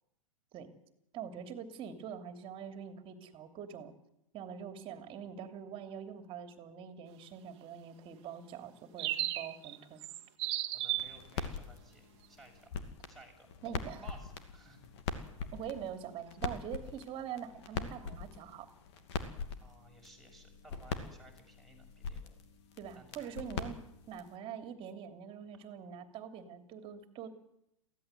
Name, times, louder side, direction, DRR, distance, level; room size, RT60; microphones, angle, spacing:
voice 1, 1.1-3.9 4.3-10.1 13.6-14.0 15.5-18.7 22.8-23.8 24.1-27.3, right 8 dB, 30° right, 7 dB, 2.9 m, -44 dB
sound 1, 9.0-9.8 10.0-11.2, right 14 dB, 50° right, 1.6 m, -34 dB
voice 2, 10.7-12.7 13.1-13.5 14.0-15.1 19.6-22.4 22.9-23.5, right 2 dB, ahead, 3 dB, 6.4 m, -57 dB
sound 2, 10.9-24.4, left 5 dB, 55° left, 2.6 m, -43 dB
23.5 x 16.0 x 8.2 m, 0.83 s
figure-of-eight pair, 105°, 17 cm